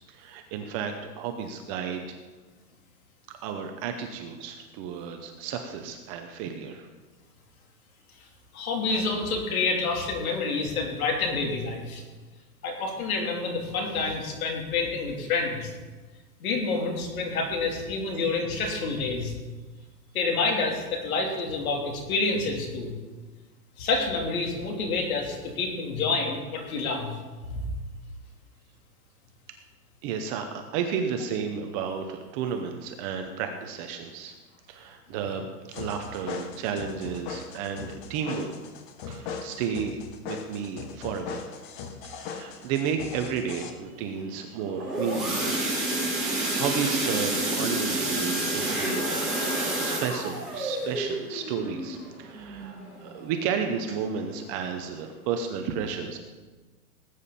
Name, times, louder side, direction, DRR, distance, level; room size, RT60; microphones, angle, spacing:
voice 1, 0.1-2.2 3.4-6.9 30.0-34.3 34.7-38.5 39.1-40.0 40.2-41.5 42.0-45.6 46.2-49.0 49.8-56.2, right 7 dB, 20° right, 5 dB, 0.7 m, -32 dB
voice 2, 8.5-12.0 12.6-15.7 16.4-19.3 20.1-23.0 23.8-27.1 27.5-27.6, left 3 dB, 65° left, 1 dB, 3.6 m, -28 dB
sound 1, 35.7-43.7, left 6 dB, 30° left, 1.1 m, -39 dB
sound 2, 44.6-53.3 53.7-53.9 54.2-54.3 54.8-54.9, right 1 dB, ahead, 4.8 m, -29 dB
19.0 x 9.1 x 4.2 m, 1.3 s
hypercardioid pair, 155°, 46 cm